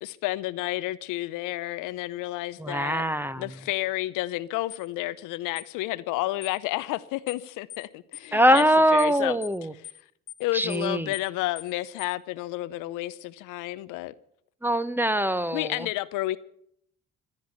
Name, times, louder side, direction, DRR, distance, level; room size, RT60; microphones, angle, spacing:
voice 1, 0.0-3.0 3.4-8.6 8.9-9.4 10.4-14.1 15.5-16.4, left 17 dB, 80° left, 0.7 m, -31 dB
voice 2, 2.6-3.4 8.3-9.7 10.5-11.1 14.6-15.9, equal, 5° right, 1.1 m, -23 dB
sound 1, 4.7-4.9 5.6-5.7 6.4-6.6 7.3-7.4 7.7-7.9 8.1-8.3 8.6-8.7 9.0-9.2 9.4-9.6 9.8-10.0 10.3-10.4 10.7-10.9 11.1-11.3 11.6-11.7 12.0-12.2, left 13 dB, 60° left, 1.2 m, -42 dB
16.0 x 10.5 x 8.2 m
hypercardioid pair, 55°, 31 cm